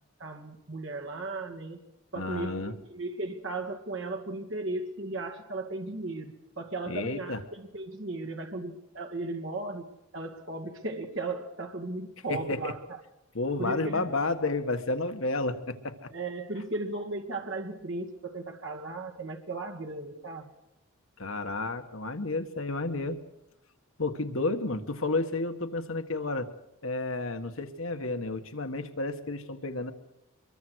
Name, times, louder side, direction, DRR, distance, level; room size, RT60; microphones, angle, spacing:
voice 1, 0.2-1.8 2.1-9.8 10.1-13.0 13.6-14.0 16.1-20.5, right 2 dB, 65° right, 3 dB, 2.3 m, -36 dB
voice 2, 2.1-2.7 6.9-7.4 12.3-12.7 13.3-16.0 21.2-23.2 24.0-26.5 26.8-29.9, left 2 dB, 75° left, 7 dB, 1.6 m, -31 dB
24.5 x 22.5 x 6.4 m, 0.88 s
head